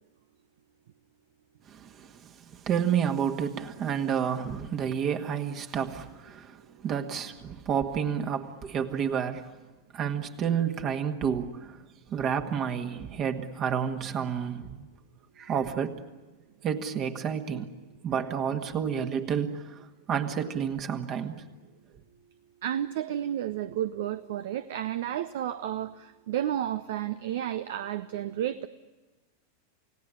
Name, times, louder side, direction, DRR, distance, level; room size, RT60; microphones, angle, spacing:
voice 1, 1.7-9.5 9.9-11.8 12.1-14.9 15.4-16.0 16.6-17.7 18.0-19.7 20.1-21.4, right 7 dB, 30° right, 6 dB, 1.7 m, -30 dB
voice 2, 22.6-28.7, right 11 dB, 55° right, 13 dB, 0.8 m, -31 dB
29.0 x 17.5 x 9.9 m, 1.2 s
figure-of-eight pair, 90°, 0 cm